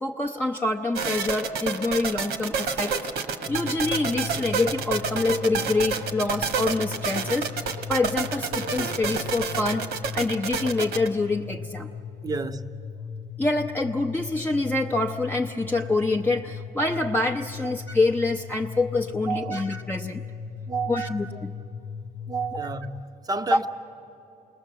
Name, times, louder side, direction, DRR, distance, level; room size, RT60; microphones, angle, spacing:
voice 1, 0.0-9.9 10.1-11.9 13.4-20.2 20.9-21.3 23.5-23.6, left 2 dB, 10° left, 0.7 m, -26 dB
sound 1, 1.0-11.1, right 5 dB, 75° right, 1.6 m, -29 dB
sound 2, 3.5-23.0, left 6 dB, 85° left, 0.7 m, -38 dB
voice 2, 12.2-12.8 17.6-17.7 19.3-19.7 20.7-21.4 22.3-23.7, right 5 dB, 20° right, 0.8 m, -31 dB
28.5 x 20.5 x 7.5 m
cardioid pair, 110°, 17 cm